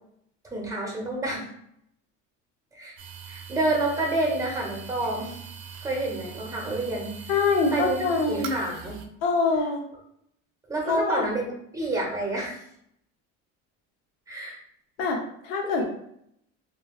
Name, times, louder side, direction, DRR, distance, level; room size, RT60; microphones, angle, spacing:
voice 1, 0.4-1.4 2.7-3.0 3.3-5.4 5.8-7.3 7.7-9.0 10.7-12.6 14.3-14.6 15.6-15.8, right 2 dB, 10° right, -1 dB, 1.0 m, -29 dB
sound 1, 3.0-9.1, right 7 dB, 65° right, 0.5 m, -41 dB
voice 2, 7.3-8.5 9.2-9.8 10.8-11.3 15.0-15.8, left 3 dB, 90° left, 1 dB, 0.8 m, -24 dB
3.2 x 2.3 x 2.4 m, 0.72 s
supercardioid pair, 95°, 36 cm